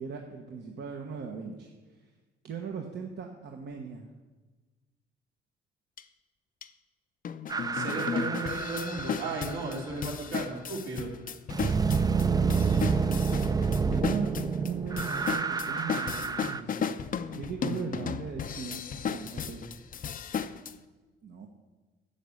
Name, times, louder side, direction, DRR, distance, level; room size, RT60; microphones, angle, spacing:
voice 1, 0.0-1.7 2.4-4.1 13.9-16.9 17.3-19.6 21.2-21.5, right 5 dB, 60° right, 2 dB, 1.2 m, -38 dB
sound 1, 6.0-6.1 6.6-6.7 7.2-20.7, left 7 dB, 45° left, 0.6 m, -35 dB
sound 2, 7.5-9.8 11.5-16.6, right 5 dB, 20° right, 0.5 m, -28 dB
voice 2, 7.7-11.1, right 3 dB, 75° right, -3 dB, 3.4 m, -35 dB
9.6 x 6.5 x 8.4 m, 1.3 s
cardioid pair, 90°, 20 cm